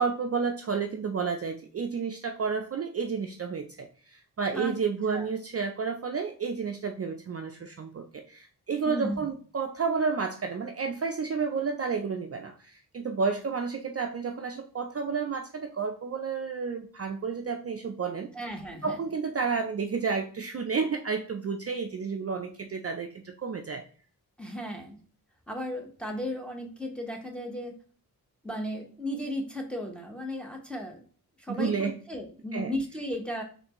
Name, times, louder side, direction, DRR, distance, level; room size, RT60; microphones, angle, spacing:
voice 1, 0.0-18.3 18.8-23.8 31.5-31.9 32.5-32.7, right 5 dB, 40° right, 5 dB, 0.4 m, -31 dB
voice 2, 8.9-9.3 18.3-19.0 24.4-25.0 25.5-27.7 28.4-31.0 31.4-33.4, equal, 5° left, 1 dB, 0.8 m, -35 dB
4.2 x 3.2 x 2.9 m, 0.42 s
wide cardioid pair, 110°, 38 cm